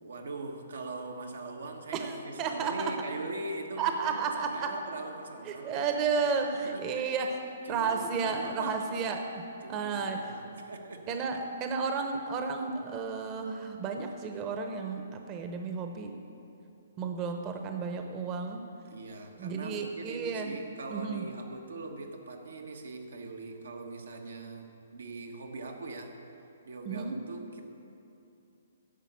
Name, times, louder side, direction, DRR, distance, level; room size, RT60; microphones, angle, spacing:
voice 1, 0.0-5.9 6.6-7.1 7.6-8.8 9.6-11.2 18.9-26.2 26.6-27.6, right 2 dB, 85° right, 3 dB, 1.5 m, -41 dB
voice 2, 1.9-3.0 3.8-4.8 5.4-7.4 7.7-9.4 9.7-10.4 11.1-16.1 17.0-18.7 19.4-20.5 20.9-21.2 26.8-27.2, right 5 dB, 30° right, 5 dB, 0.8 m, -32 dB
10.5 x 6.9 x 8.7 m, 2.7 s
hypercardioid pair, 140°, 0 cm